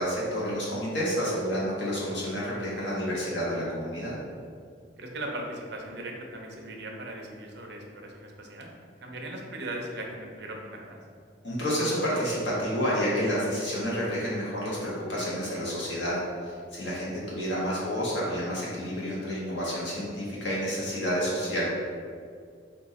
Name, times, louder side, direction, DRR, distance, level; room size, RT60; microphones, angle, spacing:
voice 1, 0.0-4.1 11.4-16.1 16.4-21.6, equal, 80° left, -6 dB, 1.4 m, -29 dB
voice 2, 5.0-8.7 9.0-11.0 16.9-17.0, right 1 dB, 65° right, 1 dB, 0.7 m, -38 dB
4.5 x 2.7 x 4.1 m, 2.1 s
head